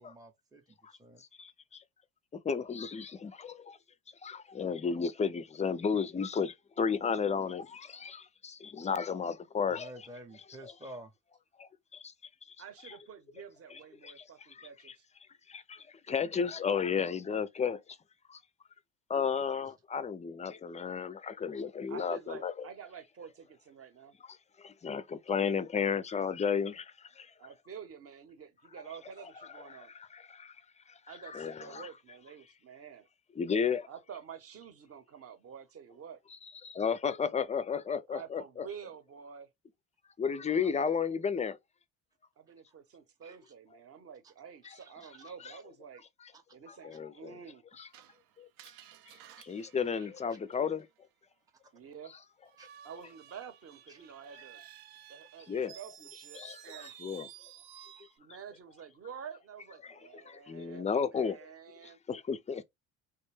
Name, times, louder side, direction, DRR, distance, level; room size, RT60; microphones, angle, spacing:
voice 1, 0.0-1.2 9.7-11.1 43.2-43.4 44.8-45.1 48.1-48.2 49.4-49.5 50.0-50.1 52.6-52.7 53.9-54.0 56.8-56.9, right 1 dB, 10° right, 0.7 m, -50 dB
voice 2, 1.4-1.8 2.3-3.8 4.2-9.9 10.6-10.7 11.6-12.1 12.5-12.6 12.8-13.0 13.7-14.9 15.5-17.8 18.3-18.4 19.1-22.5 24.6-27.3 29.6-30.6 30.9-31.9 33.4-33.9 36.6-38.7 40.2-41.6 44.6-44.8 45.4-45.5 46.7-47.3 47.8-47.9 48.4-48.5 49.4-50.9 55.5-55.8 56.3-57.3 59.8-59.9 60.2-61.4 61.8-62.6, left 6 dB, 20° left, 0.4 m, -33 dB
voice 3, 12.6-15.0 21.9-24.1 27.4-29.9 31.1-33.1 33.9-36.2 38.1-39.5 40.6-41.0 42.4-46.0 46.5-47.6 51.7-52.1 52.8-54.6 55.1-56.9 58.2-62.0, right 7 dB, 40° right, 0.9 m, -49 dB
Screech, 47.9-50.8 52.5-58.2, right 10 dB, 70° right, 0.7 m, -54 dB
3.5 x 2.1 x 3.1 m
supercardioid pair, 90°, 37 cm